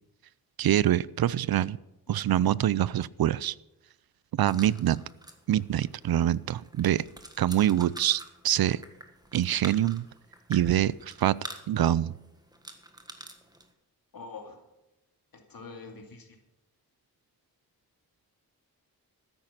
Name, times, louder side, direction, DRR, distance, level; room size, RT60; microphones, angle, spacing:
voice 1, 0.6-1.8 2.1-3.5 4.3-5.0 5.5-7.0 7.4-8.8 9.3-10.1 10.5-11.3 11.7-12.1, right 12 dB, 75° right, 21 dB, 0.5 m, -25 dB
sound 1, 4.5-13.7, right 1 dB, 10° right, 1.5 m, -47 dB
voice 2, 14.1-14.6 15.5-16.4, left 4 dB, 65° left, 3 dB, 2.5 m, -44 dB
13.5 x 9.9 x 5.9 m, 0.93 s
wide cardioid pair, 110°, 37 cm